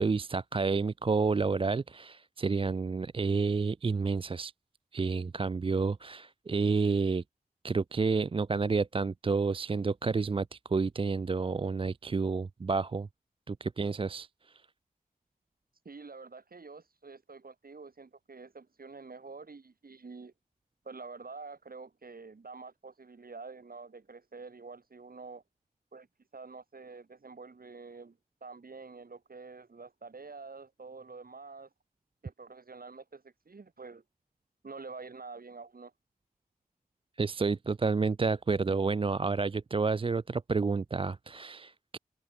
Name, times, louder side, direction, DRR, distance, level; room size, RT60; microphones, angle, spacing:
voice 1, 0.0-4.5 4.9-7.2 7.6-13.1 13.5-14.3 37.2-42.0, right 4 dB, 35° right, 0.4 m, -30 dB
voice 2, 15.8-20.3 20.8-25.4 25.9-26.1 26.3-31.7 32.2-34.0 34.6-35.9, right 4 dB, 70° right, 2.7 m, -47 dB
wide cardioid pair, 80°, 16 cm